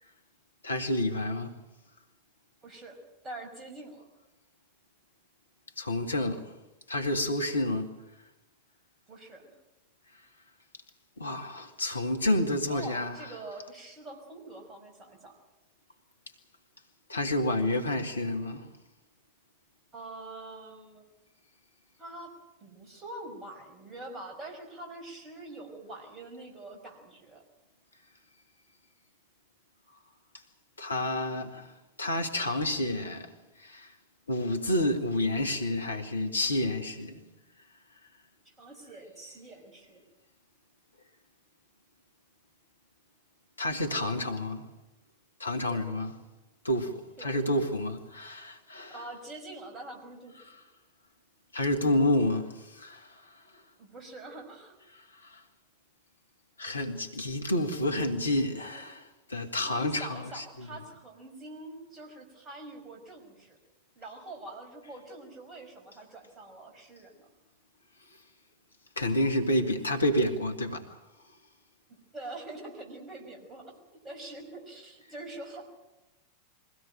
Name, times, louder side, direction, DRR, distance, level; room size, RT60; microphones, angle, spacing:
voice 1, 0.6-1.5 5.8-6.5 6.9-7.9 11.2-13.3 17.1-18.7 30.8-31.7 32.0-33.9 34.3-37.2 43.6-44.7 45.4-46.1 46.6-49.0 51.5-53.4 54.9-55.4 56.6-60.7 69.0-71.0, left 1 dB, 75° left, 2.0 m, -29 dB
voice 2, 2.6-3.0 3.2-4.1 9.1-9.5 12.7-15.3 19.9-21.1 22.0-22.3 22.6-27.4 38.5-40.0 45.7-45.8 47.2-47.3 48.9-50.6 53.8-54.8 58.6-58.9 59.5-63.6 64.0-67.3 71.9-75.7, right 2 dB, 20° right, 5.4 m, -45 dB
23.0 x 16.5 x 9.2 m
figure-of-eight pair, 90°, 0 cm